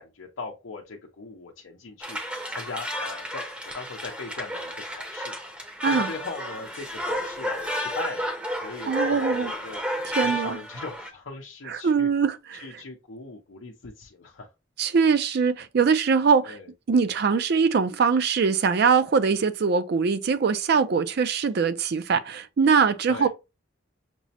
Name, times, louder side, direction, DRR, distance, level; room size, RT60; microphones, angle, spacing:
voice 1, 0.0-2.2 2.5-3.4 3.7-5.4 5.6-9.8 10.1-12.1 12.5-14.5 16.4-16.7 23.1-23.3, left 4 dB, 75° left, 0.6 m, -39 dB
sound 1, 2.0-11.1, equal, 5° right, 0.6 m, -32 dB
voice 2, 8.9-9.5 10.2-10.6 11.8-12.6 14.8-16.6 16.9-23.3, right 5 dB, 55° right, 0.4 m, -22 dB
6.0 x 2.0 x 2.7 m
head